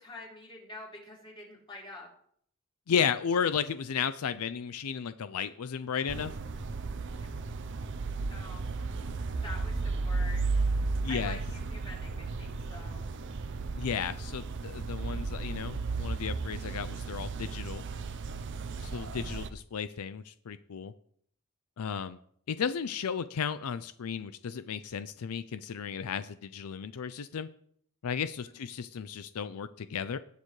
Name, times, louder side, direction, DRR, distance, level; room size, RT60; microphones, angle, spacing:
voice 1, 0.0-2.1 7.1-7.3 8.3-8.7 9.4-10.6 11.1-13.1 28.4-28.6, left 2 dB, 25° left, -3 dB, 3.3 m, -46 dB
voice 2, 2.9-6.3 11.0-11.4 13.8-17.8 18.8-20.9 21.8-22.2 22.5-27.5 28.0-30.2, left 7 dB, 85° left, 13 dB, 0.5 m, -34 dB
sound 1, 6.1-19.5, right 3 dB, 55° right, 0.6 m, -34 dB
19.0 x 6.7 x 3.2 m, 0.63 s
head